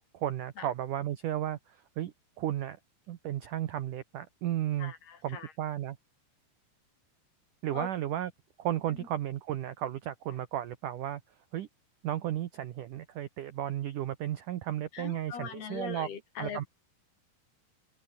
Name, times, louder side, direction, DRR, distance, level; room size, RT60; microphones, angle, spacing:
voice 1, 0.1-2.8 3.1-4.9 5.2-6.0 7.6-8.3 8.6-11.2 11.5-11.7 12.0-16.1 16.4-16.6, right 12 dB, 75° right, 1.9 m, -34 dB
voice 2, 4.8-5.5 7.7-7.9 8.9-9.1 14.9-16.7, left 7 dB, 60° left, 5.2 m, -41 dB
open air
omnidirectional pair, 5.3 m